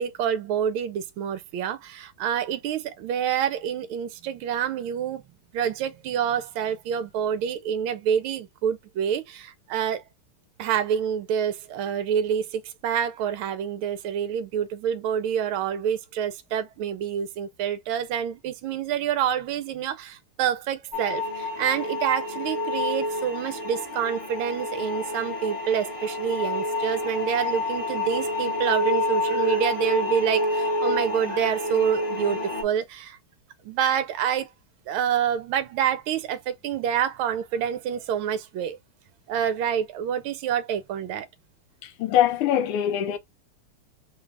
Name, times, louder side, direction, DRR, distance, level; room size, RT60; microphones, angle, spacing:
voice 1, 0.0-5.2 5.5-10.0 10.6-33.2 33.6-34.5 34.9-38.8 39.3-41.3, right 8 dB, 75° right, 1.5 m, -27 dB
sound 1, 20.9-32.6, left 2 dB, 30° left, 0.9 m, -28 dB
voice 2, 41.8-43.2, left 10 dB, 85° left, 1.6 m, -23 dB
3.9 x 2.4 x 3.3 m
omnidirectional pair, 2.4 m